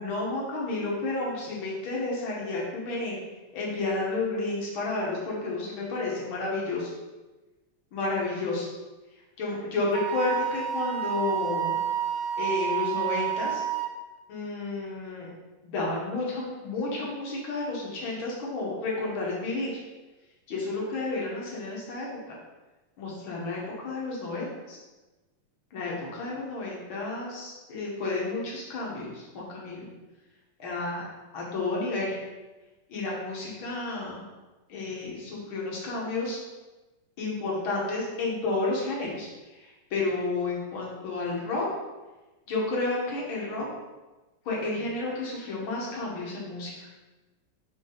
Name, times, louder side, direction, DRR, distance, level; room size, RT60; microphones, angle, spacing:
voice 1, 0.0-3.2 3.5-6.9 7.9-8.7 9.4-11.8 12.4-13.6 14.3-15.3 15.6-19.7 20.5-22.1 23.0-24.8 25.7-29.9 30.6-31.1 31.3-32.2 32.9-34.2 34.7-36.4 37.2-39.3 39.9-41.7 42.5-43.7 44.5-46.7, left 3 dB, 50° left, -4 dB, 2.0 m, -31 dB
Wind instrument woodwind instrument, 9.9-13.9, right 9 dB, 80° right, 1.5 m, -29 dB
6.4 x 5.2 x 3.9 m, 1.2 s
omnidirectional pair, 3.6 m